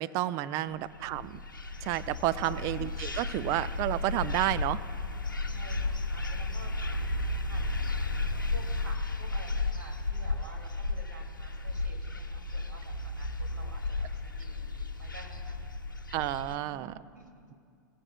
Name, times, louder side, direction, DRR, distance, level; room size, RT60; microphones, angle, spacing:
voice 1, 0.0-1.4 1.8-4.8 16.1-16.9, right 14 dB, 30° right, 15 dB, 0.4 m, -31 dB
sound 1, 0.9-16.6, left 2 dB, 85° left, 0.8 m, -34 dB
voice 2, 2.3-2.7 5.4-7.0 7.4-15.7 17.1-17.3, right 2 dB, 75° right, 0 dB, 2.4 m, -51 dB
18.5 x 14.5 x 2.3 m, 2.3 s
figure-of-eight pair, 100°, 11 cm